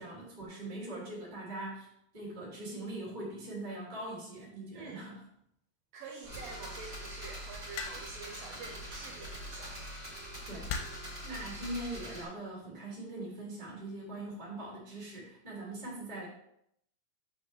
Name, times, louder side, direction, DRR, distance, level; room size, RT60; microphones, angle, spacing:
voice 1, 0.0-5.2 10.5-10.8 11.2-16.3, right 1 dB, 35° right, -4 dB, 0.7 m, -42 dB
voice 2, 4.7-5.1 5.9-9.7, right 4 dB, 75° right, 2 dB, 2.1 m, -47 dB
sound 1, 6.2-12.2, equal, 10° right, 1.8 m, -43 dB
sound 2, 7.8-8.3 9.5-9.8 10.7-11.2 12.1-12.5, left 5 dB, 90° left, 2.7 m, -39 dB
7.0 x 6.2 x 3.2 m, 0.74 s
omnidirectional pair, 4.7 m